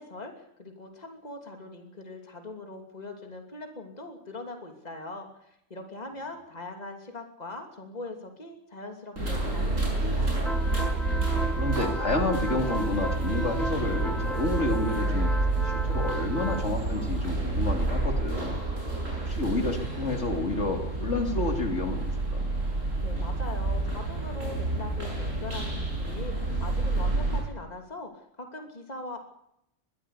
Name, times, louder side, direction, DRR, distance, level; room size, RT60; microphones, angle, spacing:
voice 1, 0.0-10.5 23.0-28.1 28.4-29.2, left 2 dB, 30° left, 4 dB, 3.1 m, -41 dB
sound 1, 9.2-27.4, right 2 dB, 85° right, 7.4 m, -29 dB
sound 2, 10.5-16.7, equal, ahead, 1.1 m, -35 dB
voice 2, 11.6-18.5 19.3-22.0 22.3-22.4, left 2 dB, 65° left, 4 dB, 3.3 m, -30 dB
22.0 x 15.0 x 8.3 m, 0.78 s
omnidirectional pair, 1.3 m